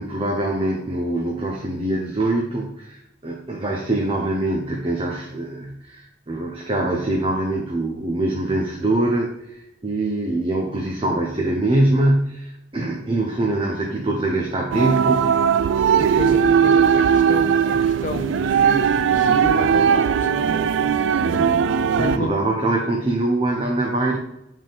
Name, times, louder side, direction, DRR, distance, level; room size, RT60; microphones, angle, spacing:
voice 1, 0.0-9.3 9.8-15.3 22.0-24.2, right 2 dB, 30° right, 0 dB, 0.7 m, -23 dB
sound 1, 14.7-22.2, right 7 dB, 90° right, 0.3 m, -18 dB
voice 2, 15.9-20.9 21.3-21.6 22.0-22.4, left 2 dB, 45° left, 6 dB, 0.6 m, -32 dB
7.9 x 3.7 x 3.5 m, 0.84 s
head